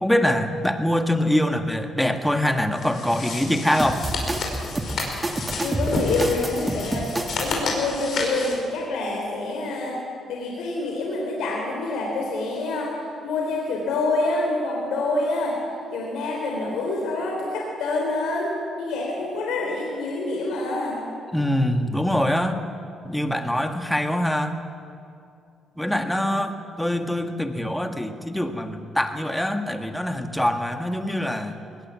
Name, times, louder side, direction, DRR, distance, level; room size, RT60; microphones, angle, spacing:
voice 1, 0.0-4.1 21.3-22.6 23.0-24.6 25.8-31.6, left 1 dB, 5° left, 6 dB, 1.8 m, -24 dB
sound 1, 2.7-8.6, left 3 dB, 60° left, 5.1 m, -31 dB
sound 2, 3.8-7.6, right 1 dB, 15° right, 1.6 m, -28 dB
voice 2, 5.6-7.1 7.4-10.0 10.3-13.0 13.2-15.6 15.9-21.0, left 2 dB, 85° left, -1 dB, 3.7 m, -26 dB
21.0 x 19.0 x 7.5 m, 2.5 s
cardioid pair, 90°, 0 cm